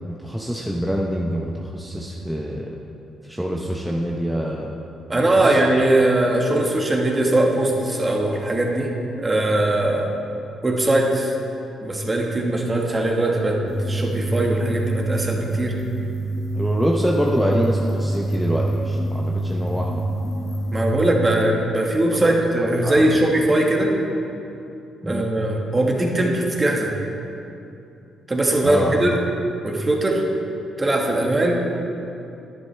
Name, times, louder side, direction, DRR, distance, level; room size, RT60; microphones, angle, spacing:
voice 1, 0.1-2.8 3.3-4.7 5.1-5.6 16.5-20.0 22.1-22.3 22.6-23.1 25.0-25.3 28.6-28.9, equal, ahead, -2 dB, 0.8 m, -25 dB
voice 2, 5.1-8.9 9.2-10.1 10.6-11.3 11.8-15.7 20.7-23.9 25.0-26.9 28.3-29.2 29.6-30.2 30.8-31.6, right 1 dB, 20° right, 0 dB, 1.5 m, -20 dB
sound 1, 13.7-20.9, right 1 dB, 30° left, 1.7 m, -26 dB
11.0 x 10.5 x 3.4 m, 2.8 s
cardioid pair, 90°, 0 cm